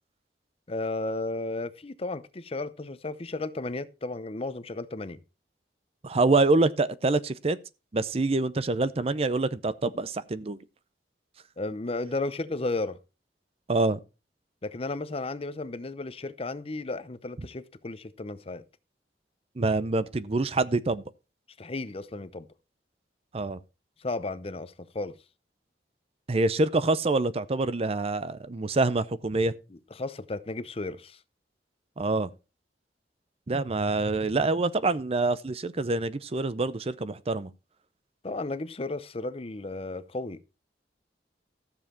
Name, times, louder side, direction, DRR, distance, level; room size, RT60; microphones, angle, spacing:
voice 1, 0.7-5.2 11.6-13.0 14.6-18.6 21.6-22.5 24.0-25.1 30.0-31.2 38.2-40.4, left 2 dB, 35° left, 0.7 m, -34 dB
voice 2, 6.0-7.6 7.9-10.6 13.7-14.0 19.6-21.0 23.3-23.6 26.3-29.5 32.0-32.3 33.5-37.5, right 3 dB, 35° right, 0.6 m, -26 dB
13.5 x 7.3 x 4.4 m
head